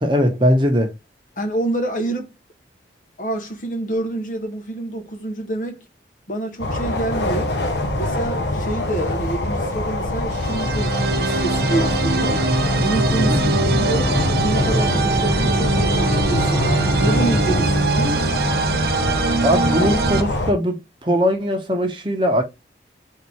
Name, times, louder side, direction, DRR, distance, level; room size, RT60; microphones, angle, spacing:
voice 1, 0.0-0.9 13.3-13.7 19.4-22.4, equal, 25° right, 0.9 m, -20 dB
voice 2, 1.4-2.3 3.2-5.9 6.3-7.6 8.0-12.4 12.8-16.6 17.0-18.4, right 2 dB, 45° left, 0.8 m, -27 dB
sound 1, 6.6-20.5, left 2 dB, 80° left, 0.9 m, -24 dB
sound 2, 10.3-20.2, right 4 dB, 60° right, 0.4 m, -23 dB
sound 3, 10.6-17.7, left 1 dB, ahead, 1.2 m, -24 dB
3.7 x 2.8 x 4.5 m
head